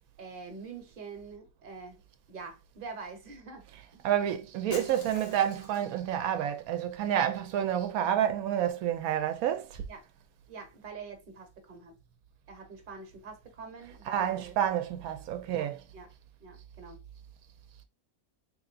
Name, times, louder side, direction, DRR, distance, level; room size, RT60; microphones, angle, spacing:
voice 1, 0.2-2.0 2.3-3.6 3.9-4.0 9.9-10.0 10.5-11.9 12.5-14.6 15.6-16.1 16.4-17.0, right 4 dB, 40° right, 1.1 m, -45 dB
voice 2, 3.7-9.7 14.0-15.8, right 10 dB, 90° right, 1.1 m, -29 dB
Shatter, 4.7-6.0, left 5 dB, 90° left, 1.3 m, -46 dB
3.8 x 3.3 x 2.4 m
omnidirectional pair, 1.5 m